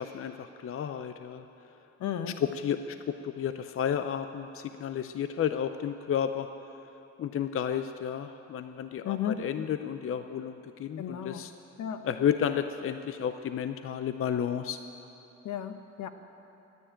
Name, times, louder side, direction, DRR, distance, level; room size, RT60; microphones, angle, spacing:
voice 1, 0.0-1.4 2.2-3.0 3.2-6.5 7.2-11.5 12.0-14.8, left 8 dB, 45° left, 9 dB, 0.6 m, -32 dB
voice 2, 2.0-2.3 9.0-9.4 11.0-11.4 11.8-12.0 15.4-16.1, left 9 dB, 70° left, 9 dB, 1.0 m, -33 dB
14.5 x 9.7 x 8.9 m, 3.0 s
cardioid pair, 90°, 30 cm